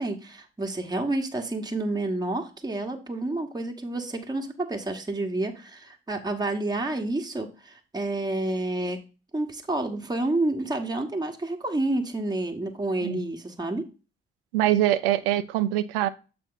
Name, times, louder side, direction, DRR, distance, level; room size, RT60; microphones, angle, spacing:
voice 1, 0.0-9.0 9.3-13.9, right 2 dB, 15° right, 1.2 m, -29 dB
voice 2, 14.5-16.1, right 13 dB, 80° right, 0.5 m, -23 dB
7.5 x 4.3 x 3.9 m
hypercardioid pair, 45°, 29 cm